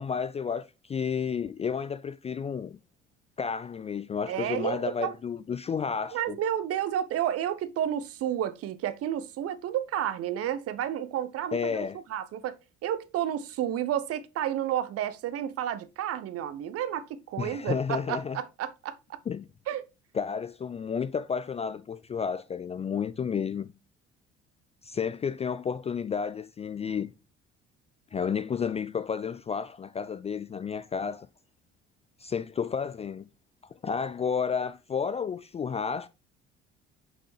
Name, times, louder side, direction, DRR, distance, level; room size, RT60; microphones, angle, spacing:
voice 1, 0.0-2.8 3.4-6.4 11.5-12.0 17.4-18.4 19.3-19.5 20.1-23.7 24.8-27.1 28.1-31.3 32.2-33.3 33.8-36.1, left 6 dB, 20° left, 0.4 m, -31 dB
voice 2, 4.3-5.1 6.1-11.8 12.1-12.6 12.8-19.2 19.7-19.8, right 11 dB, 45° right, 0.9 m, -31 dB
6.2 x 5.7 x 3.2 m
figure-of-eight pair, 55°, 33 cm